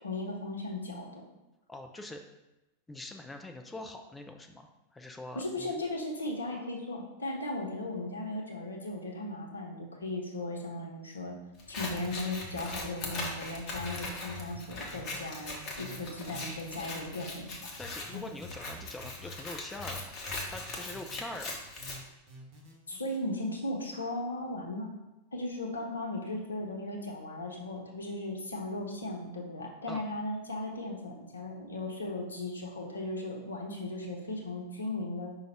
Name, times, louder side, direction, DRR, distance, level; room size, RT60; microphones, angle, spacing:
voice 1, 0.0-1.2 5.3-11.3 11.7-17.5 18.1-18.2 22.9-24.9 25.3-35.4, left 2 dB, 75° left, 0 dB, 0.8 m, -37 dB
voice 2, 1.7-2.2 2.9-5.7 17.8-20.2 20.5-21.6 29.9-30.0, left 2 dB, 10° left, 4 dB, 0.3 m, -43 dB
Scissors, 11.6-22.0, left 2 dB, 35° left, 0.9 m, -40 dB
sound 1, 11.8-13.3 13.8-15.2 15.8-17.2 17.8-19.3 19.8-21.2 21.8-23.2, left 2 dB, 40° right, 1.1 m, -48 dB
5.1 x 2.4 x 4.3 m, 0.98 s
figure-of-eight pair, 90°, 0 cm